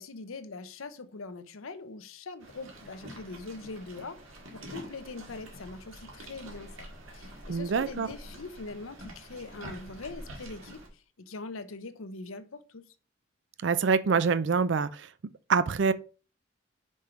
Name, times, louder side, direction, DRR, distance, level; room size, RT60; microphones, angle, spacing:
voice 1, 0.0-4.2 4.5-12.8, left 3 dB, 80° left, 0.8 m, -42 dB
sound 1, 2.4-10.9, right 1 dB, 80° right, 1.9 m, -46 dB
voice 2, 7.5-8.1 13.6-15.1 15.5-15.9, right 5 dB, 60° right, 0.4 m, -25 dB
5.4 x 5.1 x 4.5 m
head